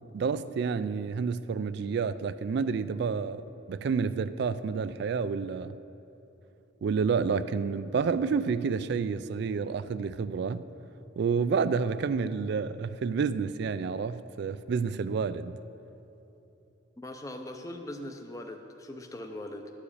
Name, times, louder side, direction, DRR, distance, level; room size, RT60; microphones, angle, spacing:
voice 1, 0.1-3.4 3.7-5.7 6.8-10.6 11.2-15.6, right 5 dB, 60° right, 0.3 m, -29 dB
voice 2, 17.0-19.7, left 1 dB, 15° left, 0.5 m, -40 dB
12.0 x 4.9 x 8.4 m
head